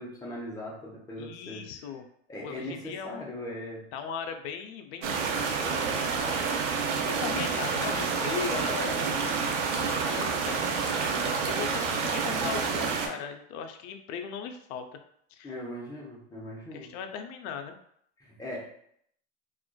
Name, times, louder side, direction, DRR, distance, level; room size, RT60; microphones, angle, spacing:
voice 1, 0.0-1.7 2.3-3.8 15.4-16.9 18.2-18.7, left 1 dB, 10° left, -4 dB, 0.8 m, -39 dB
voice 2, 1.2-2.1 2.4-3.2 3.9-5.4 7.0-9.6 10.0-14.8 15.3-15.5 16.7-17.7, left 7 dB, 65° left, 7 dB, 0.5 m, -38 dB
sound 1, 5.0-13.1, right 5 dB, 90° right, 0.6 m, -28 dB
2.4 x 2.4 x 2.2 m, 0.67 s
supercardioid pair, 110°, 34 cm